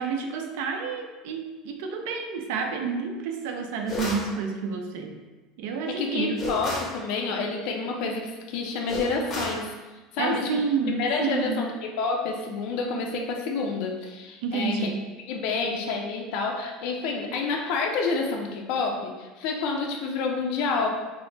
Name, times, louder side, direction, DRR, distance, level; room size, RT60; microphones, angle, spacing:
voice 1, 0.0-5.2 5.6-6.4 10.2-11.6 14.4-15.1, right 5 dB, 75° right, 4 dB, 0.4 m, -29 dB
sound 1, 3.9-4.3 6.4-7.0 8.9-9.6, left 1 dB, 25° left, 0.7 m, -32 dB
voice 2, 5.9-9.7 10.1-10.5 10.8-14.9 15.3-20.9, left 4 dB, 60° left, 1 dB, 0.4 m, -28 dB
3.6 x 2.0 x 3.2 m, 1.2 s
cardioid pair, 160°, 0 cm